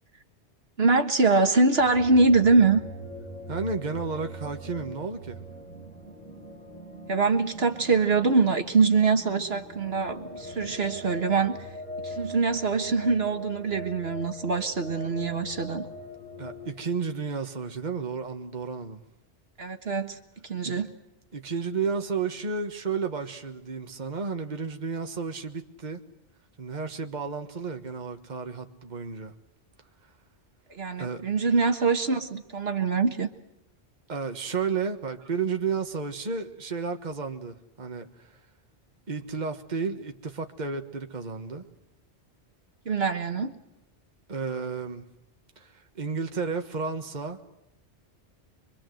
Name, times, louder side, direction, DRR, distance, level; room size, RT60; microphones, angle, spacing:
voice 1, 0.8-2.8 7.1-11.6 12.0-15.9 19.6-20.2 20.4-20.9 30.7-33.3 42.9-43.5, right 4 dB, 60° right, 6 dB, 1.8 m, -24 dB
sound 1, 1.8-16.7, equal, 35° left, 5.7 m, -41 dB
voice 2, 3.5-5.4 16.4-19.0 20.6-20.8 21.3-26.0 26.6-29.3 31.0-31.2 34.1-38.3 39.1-41.6 44.3-45.0 45.6-47.4, right 5 dB, 40° right, 5 dB, 1.6 m, -32 dB
25.0 x 25.0 x 7.8 m, 0.83 s
omnidirectional pair, 1.2 m